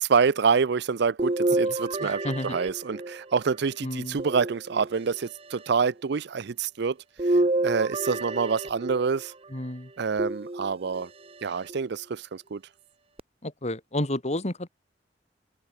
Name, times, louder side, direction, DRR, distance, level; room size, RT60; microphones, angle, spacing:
voice 1, 0.1-7.0 7.3-9.3 10.0-11.1 11.4-12.6, right 5 dB, 65° right, 0.5 m, -27 dB
sound 1, 1.2-3.5 4.2-5.2 7.2-9.3 10.2-11.1 11.7-11.8 13.2-13.3, right 2 dB, 30° right, 1.2 m, -28 dB
voice 2, 2.0-2.6 3.8-4.2 9.5-9.9 13.4-14.7, left 1 dB, 35° left, 3.1 m, -31 dB
head